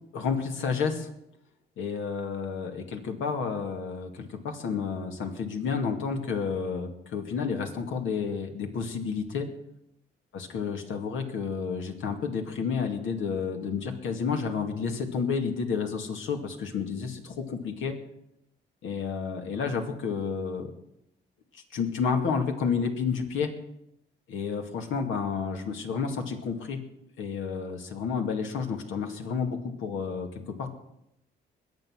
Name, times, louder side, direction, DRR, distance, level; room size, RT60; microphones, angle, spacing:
voice 1, 0.1-1.1 1.8-9.5 10.3-17.9 18.8-20.7 21.5-23.5 24.3-26.8 27.2-30.7, left 5 dB, 80° left, 4 dB, 2.3 m, -30 dB
21.0 x 8.1 x 6.3 m, 0.80 s
cardioid pair, 90°, 20 cm